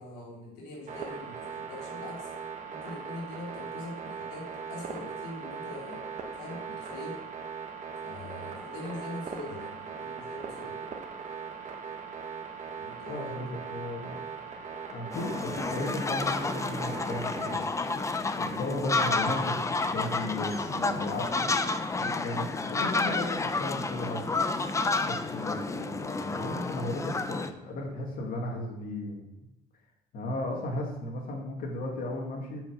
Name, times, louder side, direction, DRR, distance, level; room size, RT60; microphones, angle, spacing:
voice 1, 0.0-2.3 2.7-6.0 6.3-7.2 8.0-10.9 12.7-13.4, left 1 dB, 80° left, -2 dB, 3.4 m, -42 dB
sound 1, 0.9-17.6, right 6 dB, 45° right, 1.3 m, -40 dB
voice 2, 13.1-14.2 14.9-17.6 18.4-19.6 19.9-21.6 22.0-24.3 25.0-29.2 30.1-32.6, left 1 dB, 60° left, 0 dB, 2.5 m, -35 dB
sound 2, 15.1-27.5, left 3 dB, 20° left, 0.6 m, -30 dB
7.4 x 5.3 x 6.7 m, 0.91 s
cardioid pair, 110°, 17 cm